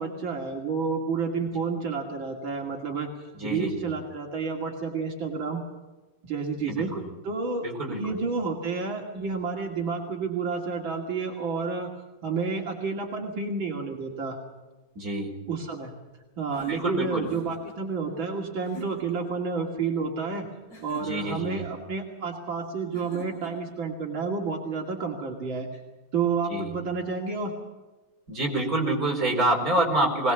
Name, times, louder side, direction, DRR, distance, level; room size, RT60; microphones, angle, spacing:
voice 1, 0.0-3.1 3.4-5.6 6.2-6.9 7.2-11.9 12.2-14.4 15.5-15.9 16.4-20.5 20.8-25.8 26.1-27.5, right 5 dB, 80° right, 0 dB, 3.2 m, -30 dB
voice 2, 3.4-3.7 6.7-7.1 7.6-8.2 14.9-15.3 16.7-17.2 21.0-21.6 26.5-26.7 28.3-30.3, right 1 dB, 45° right, 1 dB, 5.1 m, -27 dB
sound 1, 16.5-17.8 18.6-19.2 20.7-21.5 22.9-23.7, equal, 40° left, 7.3 m, -45 dB
21.5 x 20.0 x 7.1 m, 1.2 s
omnidirectional pair, 2.1 m